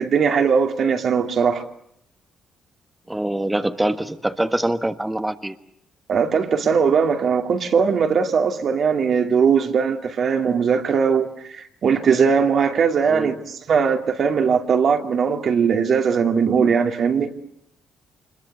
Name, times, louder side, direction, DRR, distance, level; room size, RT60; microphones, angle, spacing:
voice 1, 0.0-1.6 6.1-17.3, right 6 dB, 60° right, 2.5 m, -20 dB
voice 2, 3.1-5.6 13.1-13.4, right 1 dB, 10° right, 1.5 m, -24 dB
26.0 x 21.5 x 8.2 m
hypercardioid pair, 50°, 0 cm